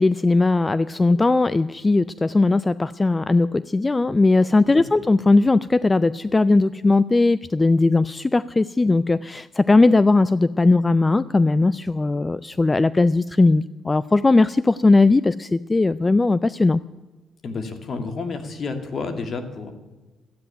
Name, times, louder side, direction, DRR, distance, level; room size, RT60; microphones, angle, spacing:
voice 1, 0.0-16.8, left 3 dB, 20° left, 17 dB, 0.4 m, -18 dB
voice 2, 17.4-19.7, left 4 dB, 50° left, 6 dB, 2.3 m, -30 dB
13.0 x 9.3 x 9.0 m, 1.2 s
cardioid pair, 90°, 0 cm